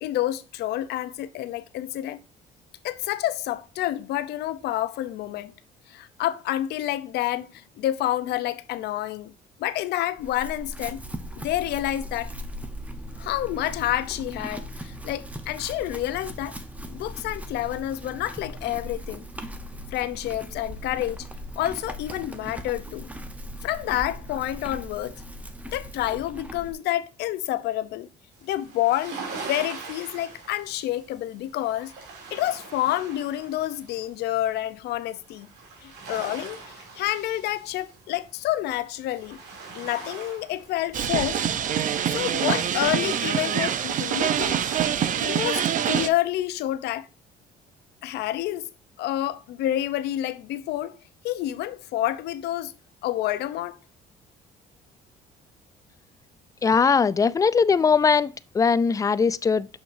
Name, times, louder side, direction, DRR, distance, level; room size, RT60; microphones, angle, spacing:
voice 1, 0.0-2.2 2.8-5.5 5.9-9.3 9.6-11.0 11.4-12.3 13.2-16.6 16.9-19.2 19.9-21.3 21.6-23.1 23.6-25.2 25.7-28.1 28.4-29.2 29.4-31.9 32.3-35.5 35.8-39.4 39.7-41.4 42.1-44.6 45.2-47.1 48.0-48.7 49.0-51.0 51.2-52.7 53.0-53.8, left 14 dB, 80° left, 0.7 m, -28 dB
Chewing mastication / Livestock farm animals working animals, 10.2-26.7, equal, 10° right, 0.9 m, -39 dB
sound 1, 28.3-34.8 35.1-44.9, right 4 dB, 85° right, 2.8 m, -43 dB
sound 2, 40.9-46.1, right 9 dB, 50° right, 0.7 m, -25 dB
voice 2, 56.6-59.7, left 5 dB, 20° left, 0.4 m, -20 dB
6.4 x 6.0 x 2.6 m
cardioid pair, 110°, 17 cm